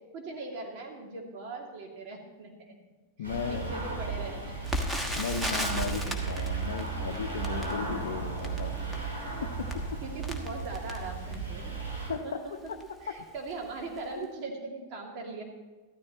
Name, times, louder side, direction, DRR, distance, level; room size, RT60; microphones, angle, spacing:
voice 1, 0.1-2.8 3.2-4.7 5.0-5.1 7.9-8.0 10.0-11.8 12.2-12.5 13.0-15.4, right 3 dB, 40° right, 0 dB, 2.6 m, -40 dB
voice 2, 3.2-3.7 5.2-8.8 9.4-10.0 12.1-12.8 14.2-14.3, left 7 dB, 60° left, 3 dB, 0.7 m, -36 dB
sound 1, 3.2-12.1, right 4 dB, 85° right, 4.0 m, -35 dB
Crackle, 4.6-11.6 12.2-12.3 12.6-12.9 13.5-13.7 14.0-14.1, equal, 5° right, 1.3 m, -36 dB
sound 2, 5.0-11.0, right 4 dB, 60° right, 1.6 m, -52 dB
14.0 x 13.0 x 3.1 m, 1.3 s
figure-of-eight pair, 90°, 0 cm